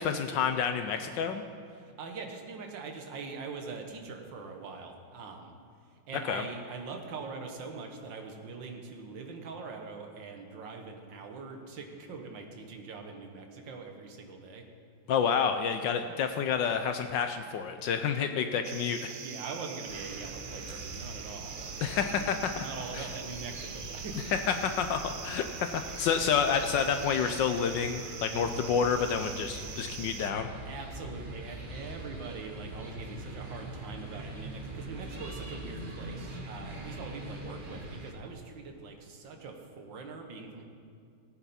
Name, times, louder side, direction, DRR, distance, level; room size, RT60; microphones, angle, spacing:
voice 1, 0.0-1.4 6.3-6.4 15.1-19.1 21.8-22.7 22.9-23.1 24.3-30.5, left 7 dB, 70° left, 7 dB, 1.1 m, -29 dB
voice 2, 1.7-5.5 6.1-14.7 19.2-24.3 30.7-40.6, right 4 dB, 65° right, 4 dB, 1.8 m, -43 dB
sound 1, 18.6-30.3, right 7 dB, 90° right, 0.6 m, -44 dB
sound 2, 19.9-38.1, right 1 dB, 30° right, 1.1 m, -43 dB
17.5 x 9.1 x 4.2 m, 2.4 s
omnidirectional pair, 2.3 m